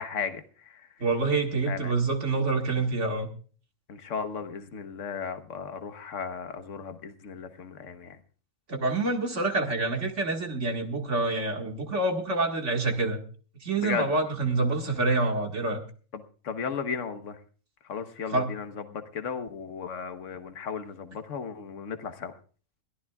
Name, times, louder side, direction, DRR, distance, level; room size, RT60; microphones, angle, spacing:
voice 1, 0.0-0.9 1.7-1.9 3.9-8.2 13.8-14.1 16.1-17.4 17.9-22.3, left 6 dB, 70° left, 8 dB, 1.5 m, -35 dB
voice 2, 1.0-3.3 8.7-13.2 13.6-15.8 18.3-18.5, right 3 dB, 60° right, 3 dB, 2.2 m, -27 dB
22.5 x 14.0 x 2.4 m, 0.40 s
omnidirectional pair, 1.4 m